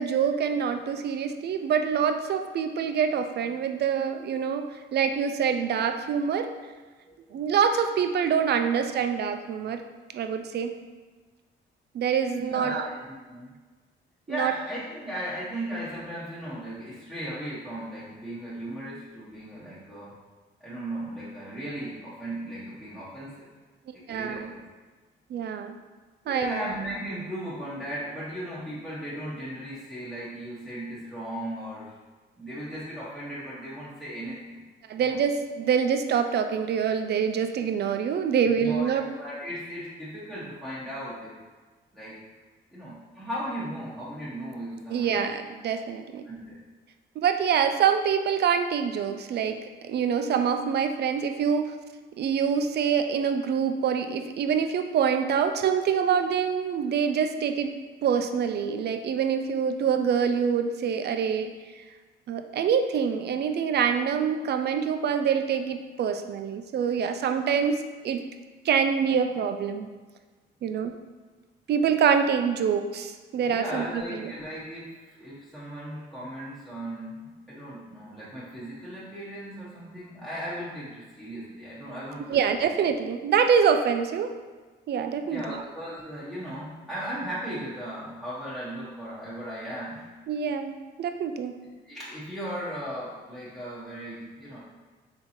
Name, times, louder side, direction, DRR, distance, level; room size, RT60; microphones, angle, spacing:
voice 1, 0.0-6.5 7.3-9.8 10.1-10.8 11.9-12.9 14.3-14.5 23.9-24.5 25.3-25.8 26.3-26.6 34.9-39.0 44.9-46.3 47.2-49.6 49.8-51.7 52.2-57.7 58.0-61.5 61.8-61.9 62.3-68.3 68.6-69.9 70.6-71.0 71.7-74.3 82.3-84.3 84.9-85.6 90.3-91.6, right 7 dB, 55° right, 7 dB, 0.4 m, -25 dB
voice 2, 12.4-13.5 14.3-20.2 20.6-23.5 24.1-24.6 26.3-31.9 32.4-34.6 35.0-35.2 38.4-41.4 41.9-42.2 42.7-45.2 46.2-46.6 73.4-82.4 85.2-90.1 91.8-94.6, right 1 dB, ahead, -11 dB, 1.1 m, -37 dB
3.7 x 2.8 x 4.3 m, 1.3 s
cardioid pair, 80°, 21 cm